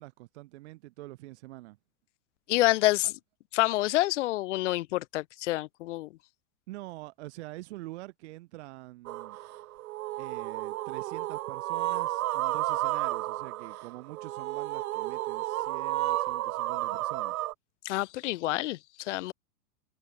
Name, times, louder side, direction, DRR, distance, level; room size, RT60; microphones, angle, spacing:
voice 1, 0.0-1.8 6.7-9.4 10.2-17.4, right 19 dB, 50° right, 1.9 m, -45 dB
voice 2, 2.5-3.1 3.5-6.1 17.8-19.3, left 17 dB, 55° left, 0.8 m, -27 dB
sound 1, 9.1-17.5, right 16 dB, 70° right, 0.9 m, -32 dB
supercardioid pair, 175°, 44 cm